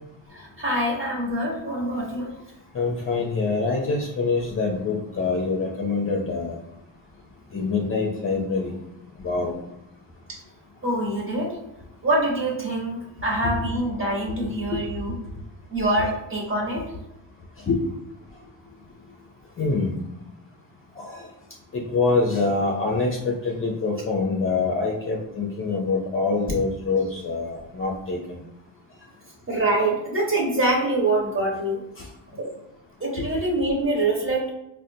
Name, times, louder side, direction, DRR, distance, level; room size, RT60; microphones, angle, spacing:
voice 1, 0.3-2.3 10.3-10.4 10.8-11.6 12.0-15.1 15.7-16.8 26.9-27.0 29.5-31.8 32.3-32.5 33.0-34.5, right 1 dB, 25° right, -4 dB, 1.2 m, -25 dB
voice 2, 2.7-6.6 7.5-8.7 9.2-9.5 17.7-17.8 19.6-19.9 21.0-21.2 21.7-28.4, left 4 dB, 30° left, -1 dB, 0.5 m, -25 dB
3.9 x 2.2 x 2.7 m, 0.86 s
cardioid pair, 110°, 46 cm